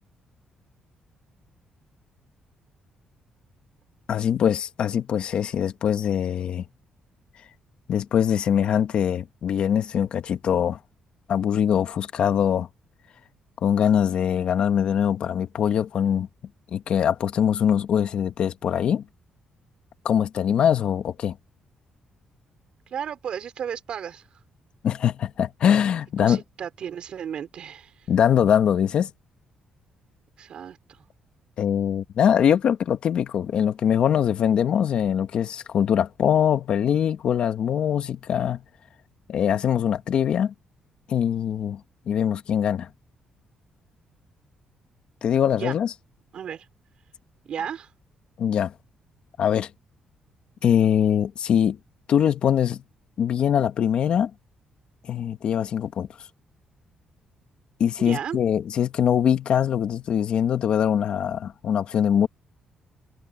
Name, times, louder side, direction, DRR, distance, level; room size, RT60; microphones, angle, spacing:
voice 1, 4.1-6.6 7.9-10.8 11.3-12.7 13.6-16.3 16.7-19.0 20.0-21.3 24.8-26.4 28.1-29.1 31.6-38.6 39.3-40.5 41.1-41.8 42.1-42.9 45.2-45.9 48.4-48.7 49.4-49.7 50.6-51.8 52.1-52.8 53.2-54.3 55.1-56.1 57.8-62.3, left 9 dB, 60° left, 1.6 m, -22 dB
voice 2, 22.9-24.3 26.2-28.1 30.4-31.0 45.6-45.7 46.3-46.7 47.4-47.9 58.0-58.4, right 8 dB, 55° right, 4.8 m, -34 dB
cardioid pair, 135°, 2 cm